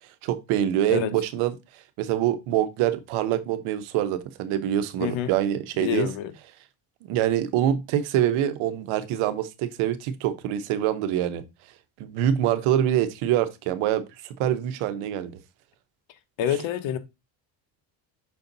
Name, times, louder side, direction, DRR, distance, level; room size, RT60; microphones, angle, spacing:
voice 1, 0.2-6.1 7.0-11.4 12.0-15.4, right 11 dB, 90° right, 1.0 m, -25 dB
voice 2, 5.0-5.3 5.8-6.3 16.4-17.0, left 10 dB, 75° left, 1.3 m, -27 dB
6.4 x 4.4 x 3.9 m
cardioid pair, 120°, 48 cm